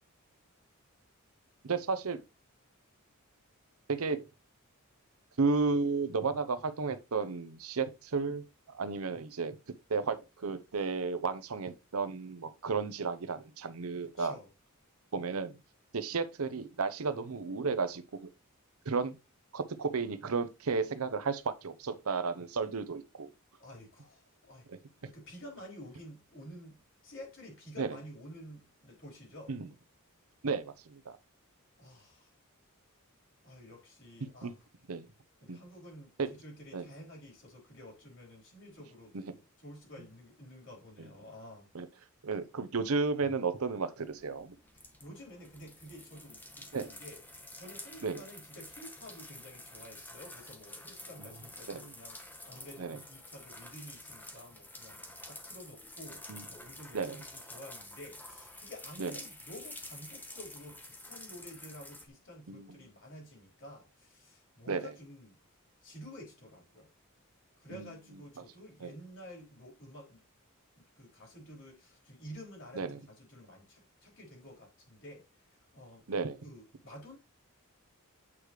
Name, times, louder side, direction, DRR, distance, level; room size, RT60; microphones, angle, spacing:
voice 1, 1.6-2.2 3.9-4.2 5.4-9.6 9.9-14.4 15.1-15.5 15.9-18.3 18.9-19.2 19.5-23.3 24.7-24.8 27.8-27.9 29.5-29.7 30.4-31.2 34.4-34.5 34.9-35.1 35.5-35.6 36.2-36.3 36.7-36.9 39.1-39.2 41.0-41.1 41.7-41.9 42.2-44.5 46.7-46.9 48.0-48.2 51.2-51.3 51.7-51.8 52.8-53.0 56.3-56.4 56.9-57.2 59.0-59.1 62.5-62.7 64.7-64.9 67.7-67.9 68.8-68.9 72.7-73.0 76.1-76.4, right 4 dB, 80° right, 0.7 m, -33 dB
voice 2, 14.0-14.5 23.6-24.7 25.0-29.5 31.8-32.3 33.4-34.7 35.4-36.1 36.4-41.7 44.7-65.3 65.8-66.9 67.6-70.2 70.8-75.2 75.5-76.0 76.4-77.2, equal, 60° left, 4.4 m, -51 dB
sound 1, 44.0-62.0, left 1 dB, 10° left, 1.1 m, -49 dB
8.5 x 4.9 x 3.1 m
head